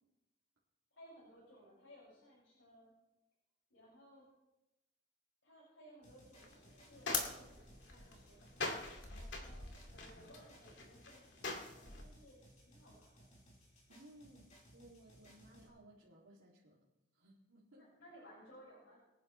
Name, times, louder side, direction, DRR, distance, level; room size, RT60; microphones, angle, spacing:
voice 1, 0.9-2.9 3.7-4.2 5.4-8.5 9.1-12.4 12.7-13.3 17.8-19.0, equal, 85° left, -7 dB, 6.0 m, -61 dB
sound 1, 6.0-15.7, equal, 35° left, 4.1 m, -63 dB
sound 2, 6.4-12.0, left 4 dB, 60° left, 2.4 m, -43 dB
voice 2, 9.1-9.5 13.9-16.8 17.1-17.9, right 1 dB, 85° right, -7 dB, 2.6 m, -61 dB
24.5 x 10.5 x 3.2 m, 0.97 s
head